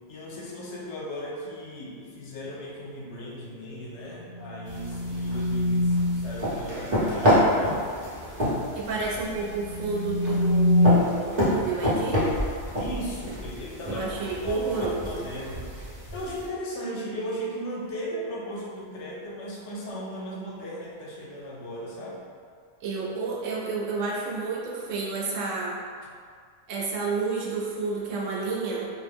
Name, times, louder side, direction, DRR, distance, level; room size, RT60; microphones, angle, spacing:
voice 1, 0.1-7.9 12.7-14.1 14.4-15.7 16.1-22.2, equal, 75° left, -4 dB, 0.9 m, -36 dB
sound 1, 4.1-6.3 9.3-10.9, left 1 dB, 65° right, 0.3 m, -24 dB
sound 2, 4.7-16.5, equal, 40° right, 0.9 m, -28 dB
voice 2, 8.7-12.3 13.9-15.3 22.8-25.8 26.7-28.9, right 4 dB, 90° right, -4 dB, 1.0 m, -30 dB
2.4 x 2.0 x 3.4 m, 2.1 s
omnidirectional pair, 1.2 m